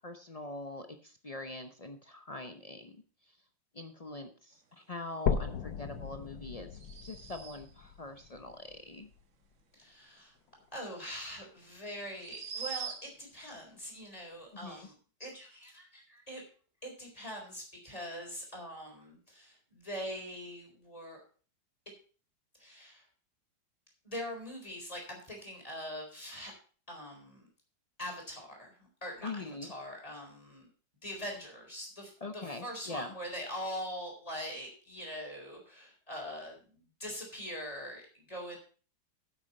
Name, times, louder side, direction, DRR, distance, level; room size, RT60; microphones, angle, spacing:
voice 1, 0.0-3.0 3.7-6.7 7.0-9.1 14.6-14.9 29.2-29.7 32.2-33.1, left 2 dB, 65° left, 7 dB, 0.3 m, -43 dB
sound 1, 5.3-9.3 9.8-9.9 10.5-10.6 10.9-11.0 11.9-12.0, left 7 dB, 85° left, 1.6 m, -36 dB
sound 2, 6.7-7.8 10.9-11.0 12.1-13.3, right 6 dB, 50° right, 1.3 m, -42 dB
voice 2, 9.7-10.3 10.7-14.9 15.2-16.4 16.8-21.2 22.6-23.0 24.0-26.5 26.9-27.5 28.0-30.7 31.0-38.6, equal, 20° left, 1 dB, 4.0 m, -43 dB
9.9 x 8.0 x 5.4 m, 0.40 s
omnidirectional pair, 1.9 m